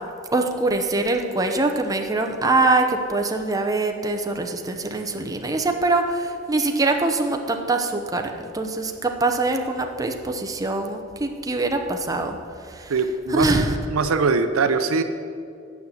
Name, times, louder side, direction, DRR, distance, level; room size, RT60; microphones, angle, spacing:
voice 1, 0.3-12.4 12.7-12.9 13.3-13.8, right 2 dB, 15° right, 4 dB, 0.7 m, -23 dB
voice 2, 12.9-15.0, right 4 dB, 75° right, 9 dB, 0.6 m, -22 dB
9.3 x 5.8 x 8.2 m, 2.4 s
head